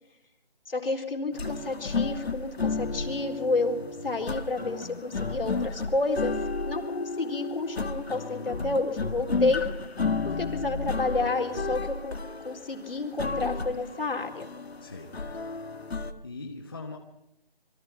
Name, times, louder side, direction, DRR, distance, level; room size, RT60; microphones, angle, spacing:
voice 1, 0.7-6.3 6.7-9.6 10.2-12.2 12.4-14.5, left 3 dB, 65° left, 3 dB, 4.1 m, -30 dB
sound 1, 1.3-16.1, left 3 dB, 85° left, 1.9 m, -32 dB
voice 2, 14.8-15.1 15.9-17.0, left 3 dB, 20° left, 3 dB, 1.1 m, -41 dB
27.5 x 22.5 x 4.5 m, 0.88 s
figure-of-eight pair, 175°, 30 cm